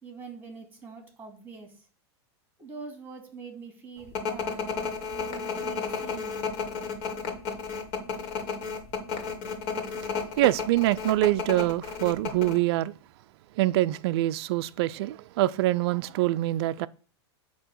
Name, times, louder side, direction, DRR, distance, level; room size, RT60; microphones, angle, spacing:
voice 1, 0.0-1.9 2.6-6.4, right 5 dB, 15° right, 2.6 m, -44 dB
sound 1, 4.1-12.6, left 5 dB, 50° left, 2.0 m, -32 dB
voice 2, 10.4-12.9 13.6-16.9, right 16 dB, 65° right, 0.4 m, -25 dB
8.8 x 2.9 x 6.2 m
hypercardioid pair, 115°, 15 cm